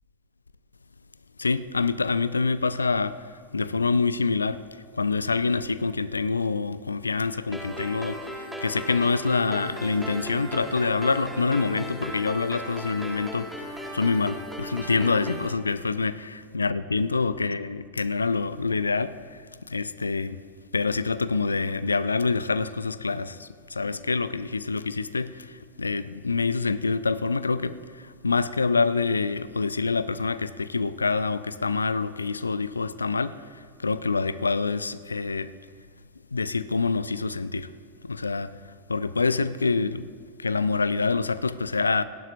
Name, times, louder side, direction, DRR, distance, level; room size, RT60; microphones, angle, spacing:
voice 1, 1.4-20.4 20.7-35.5 36.3-37.7 38.0-38.6 38.9-40.1 40.4-42.0, left 4 dB, 75° left, 0.4 m, -26 dB
sound 1, 7.5-15.5, equal, ahead, 1.8 m, -37 dB
28.0 x 11.5 x 2.6 m
figure-of-eight pair, 90°, 0 cm